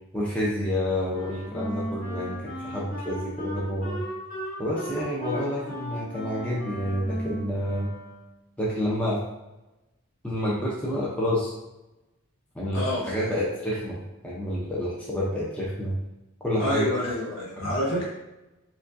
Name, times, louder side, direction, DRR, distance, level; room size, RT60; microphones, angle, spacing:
voice 1, 0.1-4.0 4.6-7.9 8.6-9.2 10.2-11.5 12.5-16.0 16.4-16.9 17.6-17.7, equal, 5° left, -7 dB, 0.6 m, -29 dB
Wind instrument woodwind instrument, 1.1-8.5, equal, 35° left, 1.2 m, -37 dB
voice 2, 12.7-13.3 16.6-18.1, left 1 dB, 70° left, -5 dB, 1.3 m, -28 dB
5.0 x 2.3 x 2.6 m, 0.97 s
head